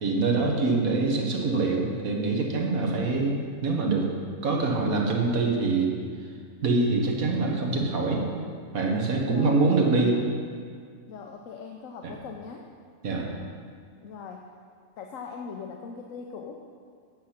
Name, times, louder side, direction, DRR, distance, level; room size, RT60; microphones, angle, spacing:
voice 1, 0.0-4.1 4.4-5.9 6.6-8.3 8.7-10.2 13.0-13.3, right 3 dB, 80° right, 0 dB, 1.8 m, -24 dB
voice 2, 9.2-9.9 11.1-12.7 14.0-14.5 15.0-16.6, left 5 dB, 75° left, 2 dB, 1.0 m, -40 dB
9.6 x 7.5 x 5.7 m, 2.1 s
omnidirectional pair, 1.5 m